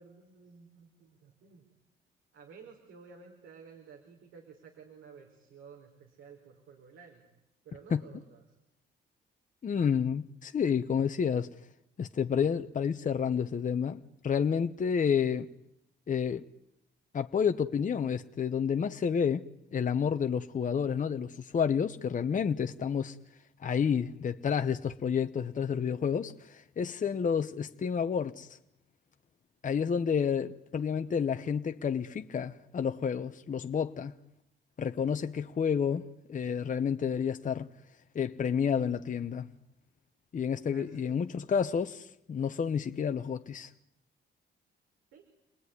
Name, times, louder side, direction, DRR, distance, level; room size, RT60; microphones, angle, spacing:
voice 1, 0.0-1.6 2.3-7.2 7.6-8.4 40.7-41.2 45.1-45.3, right 5 dB, 85° right, 4.9 m, -53 dB
voice 2, 9.6-11.5 12.0-15.5 16.1-16.4 17.1-19.5 19.7-23.2 23.6-28.6 29.6-34.1 34.8-37.7 38.1-39.5 40.3-43.7, left 7 dB, 40° left, 1.1 m, -30 dB
29.5 x 20.0 x 9.8 m
cardioid pair, 90°, 20 cm